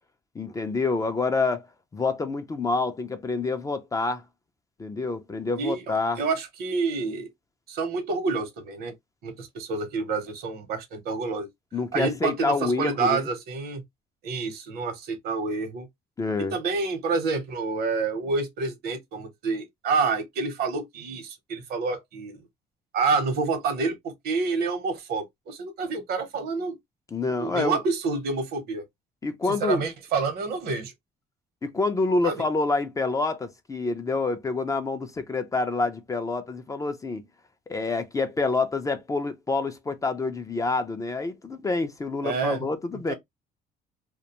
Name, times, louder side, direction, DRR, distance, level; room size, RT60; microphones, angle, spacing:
voice 1, 0.4-1.7 1.9-4.2 4.8-6.2 11.7-13.2 16.2-16.6 27.1-27.8 29.2-29.9 31.6-37.2 37.7-43.1, left 3 dB, 20° left, 0.3 m, -27 dB
voice 2, 5.6-7.3 7.7-8.9 9.2-11.5 11.9-13.8 14.2-15.9 16.4-22.4 22.9-26.8 27.4-28.8 29.6-30.9 32.2-32.4 42.2-42.7 43.1-43.2, right 4 dB, 65° right, 0.8 m, -28 dB
2.4 x 2.1 x 2.7 m
cardioid pair, 110°, 17 cm